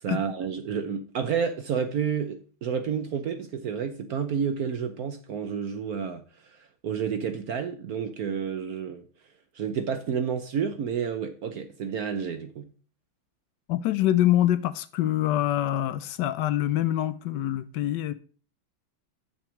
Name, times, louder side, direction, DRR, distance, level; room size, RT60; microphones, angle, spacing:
voice 1, 0.0-6.2 6.8-9.1 9.5-12.7, right 7 dB, 70° right, 0.9 m, -30 dB
voice 2, 13.7-18.1, left 13 dB, 80° left, 1.0 m, -25 dB
6.9 x 5.9 x 6.1 m
omnidirectional pair, 2.4 m